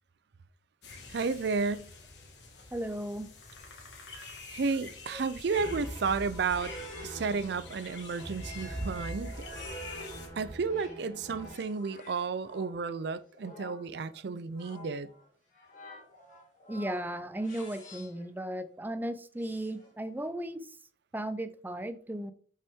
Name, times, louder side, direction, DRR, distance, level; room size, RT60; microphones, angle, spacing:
sound 1, 0.8-10.3, left 4 dB, 70° left, 1.8 m, -48 dB
voice 1, 1.1-1.8 4.5-6.7 7.0-9.3 10.4-15.1, right 4 dB, 65° right, 0.5 m, -32 dB
voice 2, 2.7-3.3 5.1-5.2 16.7-20.6 21.1-22.3, right 1 dB, 10° right, 0.5 m, -35 dB
sound 2, 5.5-11.5, right 1 dB, 20° left, 2.3 m, -42 dB
sound 3, 6.5-10.3 10.7-18.3 19.4-20.0, left 3 dB, 45° left, 2.5 m, -51 dB
6.1 x 5.6 x 3.6 m
head